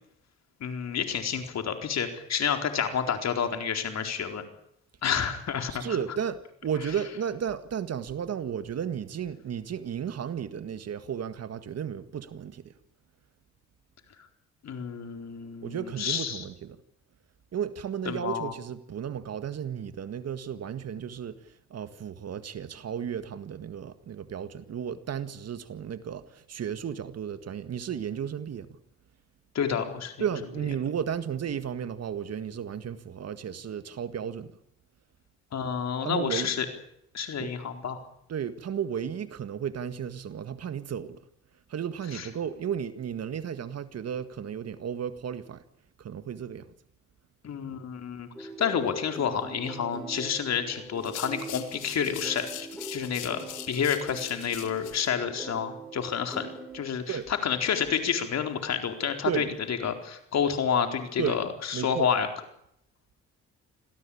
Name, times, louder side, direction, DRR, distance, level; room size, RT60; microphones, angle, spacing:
voice 1, 0.6-4.4 5.0-6.0 14.6-16.4 18.1-18.5 29.5-30.1 35.5-36.7 37.1-38.0 42.1-42.3 47.4-52.5 52.9-56.5 56.7-62.3, left 7 dB, 60° left, 4.2 m, -29 dB
voice 2, 5.7-12.7 15.6-16.8 17.5-21.4 21.7-28.7 30.2-34.5 36.0-36.6 37.4-37.5 38.3-41.2 41.7-45.6 46.0-46.7 57.1-57.3 59.3-59.5 61.2-61.4 61.7-62.1, right 8 dB, 55° right, 1.8 m, -33 dB
sound 1, 48.3-57.4 57.8-58.3, right 2 dB, ahead, 4.4 m, -43 dB
sound 2, 51.0-55.1, left 12 dB, 85° left, 2.3 m, -42 dB
26.0 x 17.0 x 8.7 m
cardioid pair, 90°, 30 cm